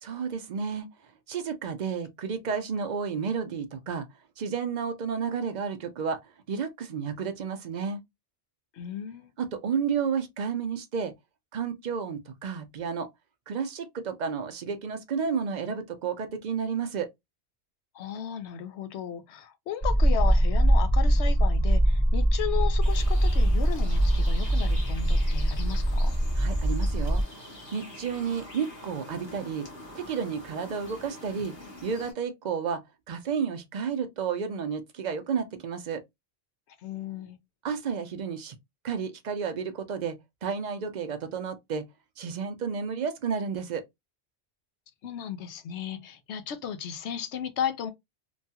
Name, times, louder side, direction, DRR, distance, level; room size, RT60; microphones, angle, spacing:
voice 1, 0.0-0.9 1.3-4.1 4.4-8.0 9.4-11.1 11.5-13.1 13.5-17.1 26.4-27.2 27.7-29.7 29.9-31.5 31.8-32.8 33.1-36.0 37.6-38.6 38.8-41.8 42.2-43.8, right 6 dB, 55° right, 0.5 m, -31 dB
voice 2, 8.7-9.3 17.9-26.1 36.7-37.4 45.0-47.9, left 8 dB, 80° left, 0.9 m, -35 dB
sound 1, 19.8-27.2, right 1 dB, 25° left, 0.7 m, -23 dB
sound 2, 22.8-32.1, left 1 dB, 60° left, 1.2 m, -45 dB
3.0 x 2.3 x 2.7 m
omnidirectional pair, 1.2 m